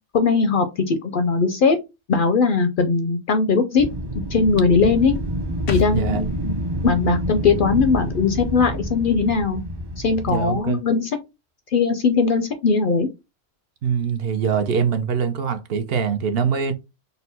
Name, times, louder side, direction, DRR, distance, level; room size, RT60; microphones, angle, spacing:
voice 1, 0.1-1.8 2.1-3.9 4.3-5.1 5.7-9.6 10.0-11.1 11.7-13.1, left 4 dB, 60° left, 0.6 m, -19 dB
Wind, 3.8-10.7, right 1 dB, 30° right, 0.5 m, -28 dB
sound 1, 5.7-9.2 9.4-9.5, left 9 dB, 90° left, 1.0 m, -33 dB
voice 2, 5.9-6.2 10.3-10.8 13.8-16.7, right 6 dB, 65° right, 0.7 m, -23 dB
4.1 x 2.2 x 4.1 m
omnidirectional pair, 1.2 m